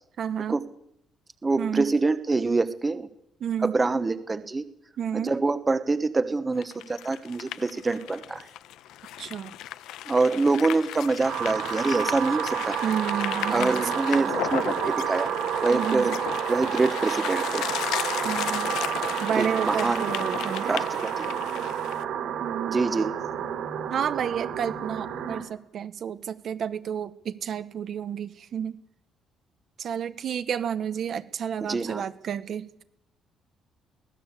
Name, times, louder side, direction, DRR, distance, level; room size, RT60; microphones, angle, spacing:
voice 1, 0.2-0.6 1.6-1.9 3.4-3.7 5.0-5.3 9.2-9.5 12.8-13.8 14.1-14.3 15.7-16.2 18.2-18.7 19.2-20.8 22.4-22.9 23.9-28.8 29.8-32.8, right 8 dB, 50° right, 12 dB, 1.2 m, -31 dB
voice 2, 1.4-3.1 3.6-4.6 5.1-8.4 10.1-12.8 13.5-15.3 15.6-16.2 16.5-17.7 19.3-20.0 20.7-21.2 22.7-23.1 31.7-32.0, right 3 dB, 20° right, 12 dB, 1.2 m, -25 dB
sound 1, 6.6-22.0, left 13 dB, 85° left, 0.9 m, -35 dB
sound 2, 11.2-25.4, right 9 dB, 70° right, 5.8 m, -30 dB
24.0 x 17.0 x 8.3 m, 0.76 s
cardioid pair, 155°, 0 cm